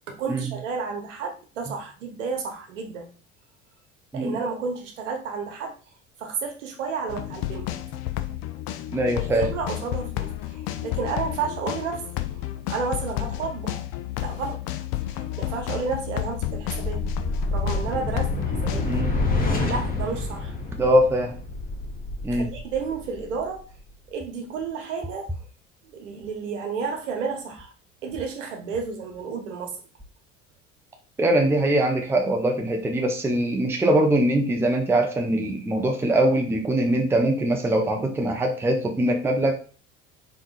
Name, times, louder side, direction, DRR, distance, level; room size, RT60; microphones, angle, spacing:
voice 1, 0.1-3.1 4.1-5.7 6.2-7.7 9.2-12.0 12.7-13.8 14.2-14.6 15.0-17.0 17.5-18.9 19.6-20.5 22.3-23.6 24.1-25.4 25.8-27.7 28.0-29.7, right 5 dB, 65° right, 2 dB, 1.0 m, -31 dB
sound 1, 7.1-19.0, left 14 dB, 45° left, 0.4 m, -31 dB
voice 2, 8.9-9.5 18.8-19.2 20.8-21.3 22.2-22.5 31.2-39.5, right 1 dB, 5° right, 2 dB, 0.6 m, -22 dB
sound 2, 16.4-23.9, left 2 dB, 20° left, 0.9 m, -29 dB
3.9 x 3.7 x 2.4 m, 0.38 s
figure-of-eight pair, 65°, 39 cm